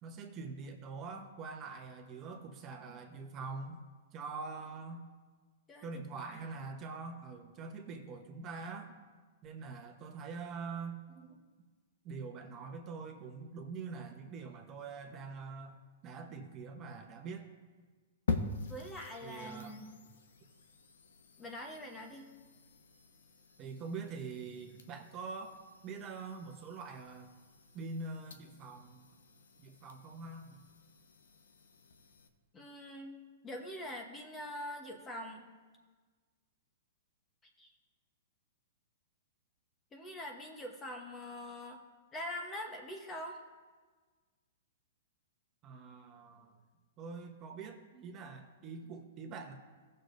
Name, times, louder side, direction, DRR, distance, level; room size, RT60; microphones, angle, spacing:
voice 1, 0.0-3.8 4.1-5.0 5.8-8.9 9.4-11.5 12.0-15.8 16.0-17.4 19.2-19.8 23.6-25.6 25.8-27.3 27.7-29.0 29.6-30.6 45.6-46.6 47.0-49.5, right 4 dB, 30° right, 3 dB, 1.0 m, -44 dB
voice 2, 5.7-6.4 18.7-19.9 21.4-22.3 32.5-33.2 33.4-35.5 37.6-37.7 39.9-41.8 42.1-43.4, left 1 dB, 15° left, 2 dB, 1.0 m, -44 dB
sound 1, 18.3-32.3, left 4 dB, 85° left, 0.8 m, -45 dB
16.0 x 6.5 x 2.6 m, 1.4 s
hypercardioid pair, 140°, 0 cm